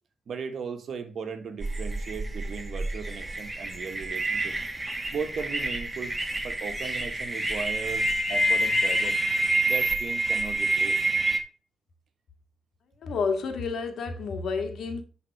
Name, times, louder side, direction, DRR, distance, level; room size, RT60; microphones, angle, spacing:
voice 1, 0.3-4.5 5.1-6.1 6.4-9.2 9.7-11.0, right 5 dB, 65° right, 1.5 m, -37 dB
sound 1, 1.6-11.4, right 1 dB, 20° right, 2.0 m, -28 dB
voice 2, 13.0-15.0, left 4 dB, 70° left, 1.9 m, -30 dB
10.5 x 4.1 x 4.7 m
cardioid pair, 70°, 0 cm